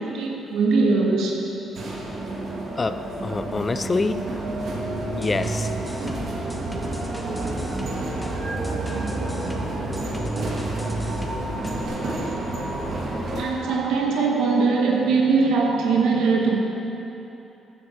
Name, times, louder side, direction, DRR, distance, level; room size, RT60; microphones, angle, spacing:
voice 1, 0.0-1.4 13.3-16.6, right 4 dB, 85° right, 0 dB, 1.6 m, -21 dB
sound 1, 1.7-13.4, right 2 dB, 60° right, 2.0 m, -29 dB
voice 2, 2.8-4.3 5.2-5.7, left 3 dB, 30° left, 11 dB, 0.4 m, -26 dB
sound 2, 5.0-11.9, left 1 dB, 5° left, 1.3 m, -39 dB
15.0 x 7.3 x 4.5 m, 2.9 s
cardioid pair, 90°, 0 cm